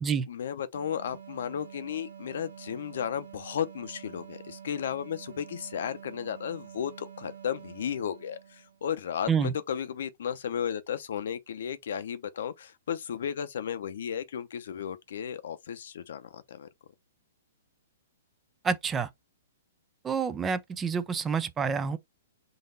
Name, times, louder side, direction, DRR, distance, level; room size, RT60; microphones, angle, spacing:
voice 1, 0.3-16.7, left 8 dB, 70° left, 0.7 m, -34 dB
sound 1, 0.7-8.9, right 8 dB, 90° right, 1.5 m, -48 dB
voice 2, 18.6-19.1 20.0-22.0, right 6 dB, 15° right, 0.4 m, -28 dB
3.9 x 2.6 x 3.9 m
hypercardioid pair, 140°, 0 cm